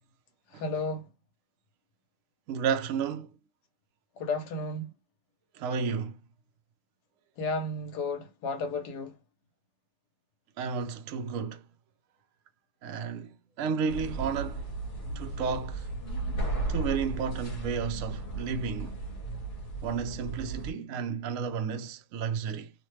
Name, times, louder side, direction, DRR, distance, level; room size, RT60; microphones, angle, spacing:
voice 1, 0.5-1.1 4.2-4.9 7.4-9.1, left 3 dB, 80° left, 1.4 m, -33 dB
voice 2, 2.5-3.3 5.5-6.2 10.6-11.6 12.8-14.7 15.2-15.9 16.7-19.0 19.8-22.7, right 6 dB, 65° right, 0.8 m, -32 dB
sound 1, 13.9-20.7, right 2 dB, 45° left, 1.7 m, -35 dB
3.2 x 2.1 x 3.0 m
omnidirectional pair, 1.7 m